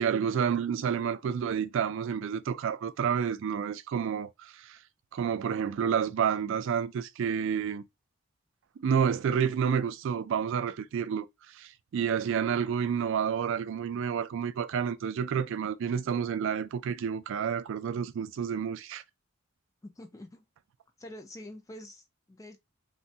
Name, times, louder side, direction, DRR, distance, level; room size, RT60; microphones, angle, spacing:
voice 1, 0.0-4.8 5.1-7.8 8.8-19.0, right 7 dB, 60° right, 0.3 m, -29 dB
voice 2, 19.8-20.4 21.0-22.6, left 1 dB, 15° left, 0.4 m, -46 dB
3.0 x 2.2 x 2.6 m
head